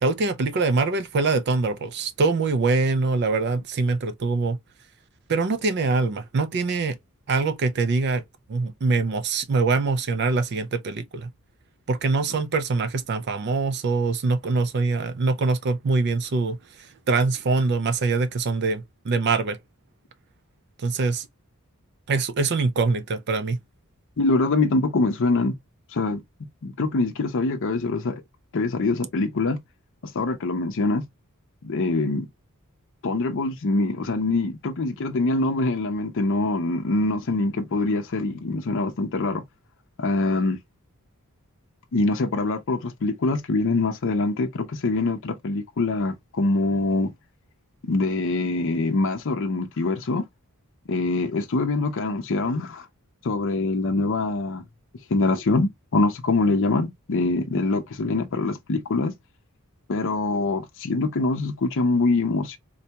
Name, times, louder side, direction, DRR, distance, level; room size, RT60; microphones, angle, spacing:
voice 1, 0.0-4.6 5.3-7.0 7.3-8.2 8.5-11.3 11.9-16.6 17.1-19.6 20.8-21.3 22.1-23.6, right 3 dB, 50° right, 0.4 m, -23 dB
voice 2, 24.2-25.5 25.9-26.2 26.6-28.2 28.5-29.6 30.0-31.0 31.6-32.3 33.0-39.4 40.0-40.6 41.9-47.1 47.8-50.3 50.9-52.9 53.2-54.6 55.1-59.1 59.9-62.6, left 3 dB, 60° left, 0.6 m, -24 dB
3.9 x 2.2 x 2.7 m
head